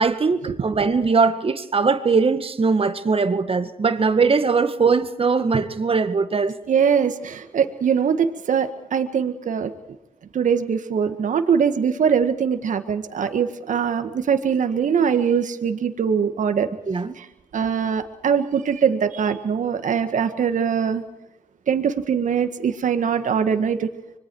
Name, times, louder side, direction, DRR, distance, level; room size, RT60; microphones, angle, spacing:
voice 1, 0.0-6.5 16.9-17.2, right 4 dB, 40° right, 1.9 m, -20 dB
voice 2, 6.7-9.7 10.3-16.7 17.2-17.3 17.5-21.0 21.7-23.9, right 7 dB, 65° right, 1.8 m, -22 dB
25.5 x 22.5 x 4.8 m
supercardioid pair, 50°, 14 cm